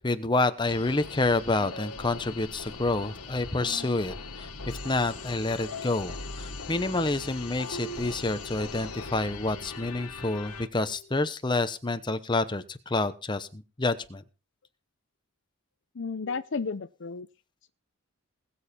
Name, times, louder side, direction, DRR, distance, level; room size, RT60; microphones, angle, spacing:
voice 1, 0.0-14.2, left 2 dB, 20° left, 0.9 m, -28 dB
sound 1, 0.7-10.7, left 3 dB, 85° left, 1.6 m, -40 dB
voice 2, 15.9-17.3, left 4 dB, 55° left, 0.6 m, -33 dB
20.5 x 7.1 x 4.3 m
head